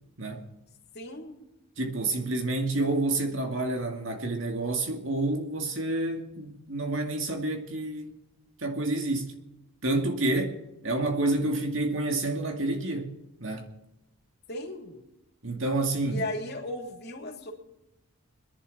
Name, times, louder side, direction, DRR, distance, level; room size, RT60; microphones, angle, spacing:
voice 1, 0.9-1.4 14.5-15.0 16.1-17.5, left 1 dB, 45° left, 3.0 m, -36 dB
voice 2, 1.8-8.2 8.6-9.3 9.8-10.6 10.8-13.1 13.4-13.7 15.4-16.2, right 2 dB, 60° right, 2.2 m, -29 dB
24.0 x 11.0 x 4.1 m
head